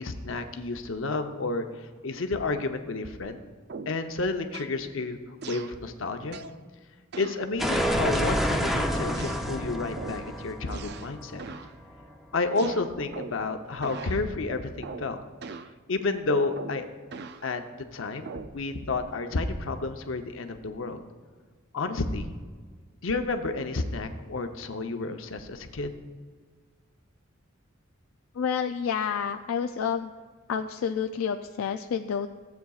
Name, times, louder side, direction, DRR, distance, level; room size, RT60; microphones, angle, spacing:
voice 1, 0.0-1.7 2.0-3.4 3.9-5.2 5.5-6.4 7.2-11.4 12.3-15.2 15.9-16.9 17.4-21.0 21.7-22.3 23.0-25.9, left 3 dB, 70° left, 6 dB, 0.8 m, -30 dB
sound 1, 3.7-4.1 4.5-4.8 5.4-5.8 6.3-6.6 7.1-7.5 8.1-8.7 9.1-9.5 10.0-10.3 10.7-11.1 11.4-11.7 12.5-13.5 13.8-14.2 14.8-15.1 15.4-15.7 16.5-17.4 18.2-18.6, right 4 dB, 55° right, 0.4 m, -41 dB
sound 2, 7.6-12.4, equal, ahead, 0.6 m, -29 dB
voice 2, 28.3-30.1 30.5-32.3, left 7 dB, 85° left, 6 dB, 0.4 m, -29 dB
15.5 x 8.1 x 2.4 m, 1.5 s
head